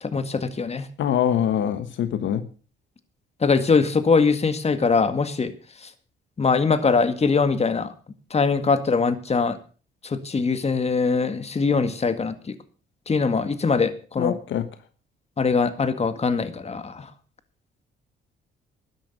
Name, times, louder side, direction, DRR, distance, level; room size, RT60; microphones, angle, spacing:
voice 1, 0.0-0.9 3.4-5.5 5.8-5.9 6.4-7.9 8.3-9.6 10.0-12.6 13.1-14.3 15.4-17.1, left 4 dB, 30° left, 11 dB, 1.9 m, -22 dB
voice 2, 1.0-2.4 14.2-14.7, left 9 dB, 70° left, 11 dB, 1.3 m, -24 dB
13.0 x 10.5 x 6.7 m, 0.39 s
cardioid pair, 90°, 20 cm